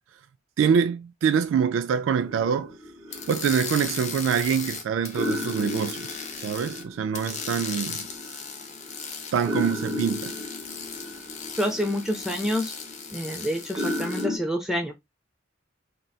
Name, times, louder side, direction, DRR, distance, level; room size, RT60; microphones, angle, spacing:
voice 1, 0.6-2.7 3.3-8.1 9.3-10.4, right 7 dB, 80° right, 0.3 m, -25 dB
sound 1, 2.2-4.7 5.1-14.4, left 1 dB, 20° right, 0.8 m, -35 dB
sound 2, 3.1-6.8 7.1-14.2, left 6 dB, 40° left, 0.6 m, -37 dB
voice 2, 11.6-12.7 13.1-14.9, equal, 5° right, 0.5 m, -27 dB
3.9 x 2.2 x 2.3 m
head